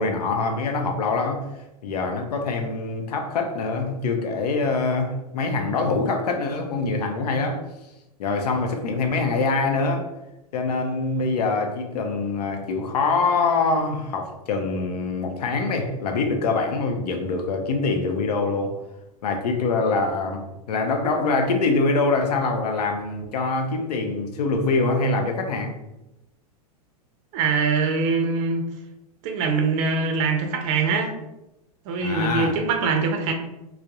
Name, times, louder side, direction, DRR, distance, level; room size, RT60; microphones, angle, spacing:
voice 1, 0.0-1.5 1.8-7.6 8.2-10.1 10.5-18.7 19.2-25.8 32.0-32.5, left 3 dB, 85° left, 4 dB, 0.5 m, -24 dB
voice 2, 27.3-28.6 29.2-31.1 31.9-33.3, right 4 dB, 50° right, 5 dB, 0.5 m, -23 dB
2.2 x 2.0 x 2.8 m, 0.94 s
hypercardioid pair, 120°, 20 cm